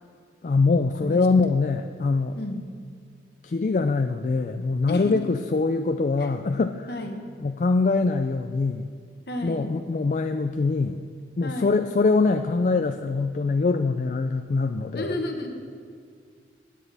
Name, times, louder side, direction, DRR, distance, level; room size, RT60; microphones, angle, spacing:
voice 1, 0.4-2.4 3.4-6.9 7.4-8.9 9.4-11.0 11.4-15.1, left 3 dB, 45° left, 7 dB, 0.4 m, -23 dB
voice 2, 2.4-2.8 4.9-5.2 6.2-6.3 6.9-7.2 9.3-9.7 11.4-11.8 14.9-15.5, left 1 dB, 60° left, 4 dB, 1.2 m, -32 dB
20.5 x 9.4 x 3.4 m, 2.1 s
head